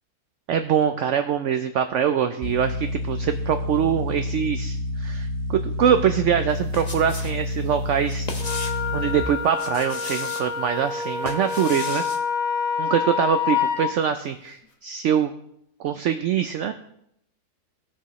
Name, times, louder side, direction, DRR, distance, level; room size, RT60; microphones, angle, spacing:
voice 1, 0.5-8.3 8.9-12.0 12.8-15.3 15.8-16.7, right 8 dB, 70° right, 8 dB, 0.7 m, -23 dB
sound 1, 2.4-9.2, left 2 dB, 50° right, 1.2 m, -29 dB
sound 2, 6.5-7.4 7.7-8.9 9.5-10.5 11.0-12.2, left 3 dB, 30° left, 0.9 m, -36 dB
Wind instrument woodwind instrument, 8.4-13.9, left 7 dB, 60° left, 1.4 m, -27 dB
17.0 x 6.3 x 3.1 m, 0.75 s
omnidirectional pair, 1.7 m